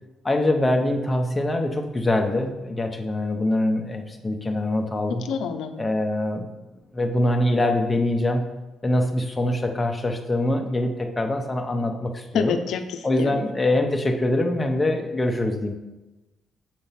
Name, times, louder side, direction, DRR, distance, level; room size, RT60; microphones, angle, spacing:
voice 1, 0.2-5.2 5.8-6.4 6.9-8.4 8.8-12.6 13.0-15.7, left 1 dB, 15° left, 4 dB, 0.7 m, -24 dB
voice 2, 5.1-5.8 12.3-13.4, left 6 dB, 70° left, 8 dB, 0.6 m, -28 dB
6.7 x 4.3 x 5.7 m, 1.1 s
cardioid pair, 140°, 0 cm